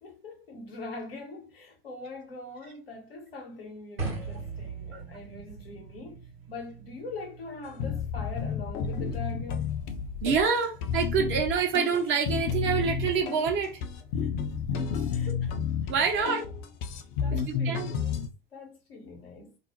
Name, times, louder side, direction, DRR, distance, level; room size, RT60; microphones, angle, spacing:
voice 1, 0.0-9.7 14.2-14.3 15.1-15.3 15.8-16.3 17.2-19.6, left 3 dB, 75° left, 0.9 m, -42 dB
sound 1, 4.0-10.1, right 4 dB, 80° right, 1.0 m, -41 dB
sound 2, 7.8-18.3, left 6 dB, 55° left, 0.6 m, -31 dB
voice 2, 10.2-13.8 15.3-15.4 15.9-16.4 17.3-17.9, right 6 dB, 40° right, 0.8 m, -27 dB
2.4 x 2.0 x 2.9 m
figure-of-eight pair, 70°, 29 cm